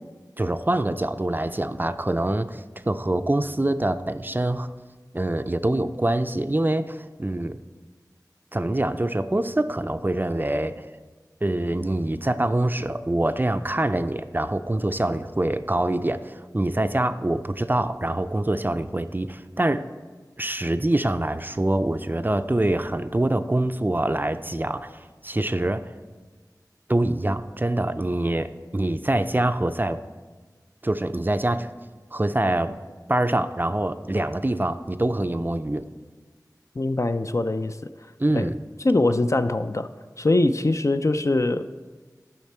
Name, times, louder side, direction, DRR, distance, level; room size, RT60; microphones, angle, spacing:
voice 1, 0.4-4.7 5.1-7.6 8.5-10.8 11.4-19.9 20.4-25.9 26.9-30.0 30.8-31.7 32.1-32.8 33.1-35.9 38.2-38.6, right 1 dB, 30° right, 11 dB, 0.4 m, -25 dB
voice 2, 36.8-37.9 38.3-38.5 38.8-39.9 40.2-41.7, left 2 dB, 45° left, 10 dB, 0.4 m, -22 dB
10.5 x 5.8 x 4.3 m, 1.4 s
wide cardioid pair, 40°, 7 cm